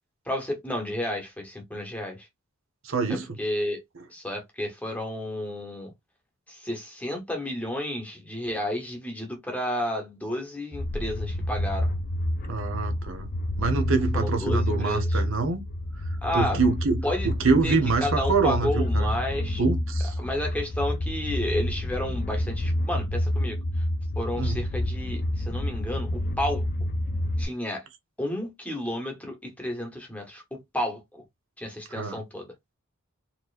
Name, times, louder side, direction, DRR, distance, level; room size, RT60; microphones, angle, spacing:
voice 1, 0.3-2.3 3.4-3.8 4.1-5.9 6.5-11.9 14.1-15.2 16.2-16.6 17.0-17.3 17.6-19.6 20.2-23.8 24.2-26.7 27.4-27.8 28.2-31.2 31.6-32.5, left 1 dB, 5° left, 0.9 m, -31 dB
voice 2, 2.8-3.3 12.5-13.3 13.6-15.6 16.1-19.1 19.6-20.2 24.4-24.6 31.9-32.2, right 4 dB, 65° right, 0.8 m, -25 dB
sound 1, 10.7-27.4, left 1 dB, 40° left, 0.4 m, -29 dB
4.3 x 2.8 x 2.4 m
head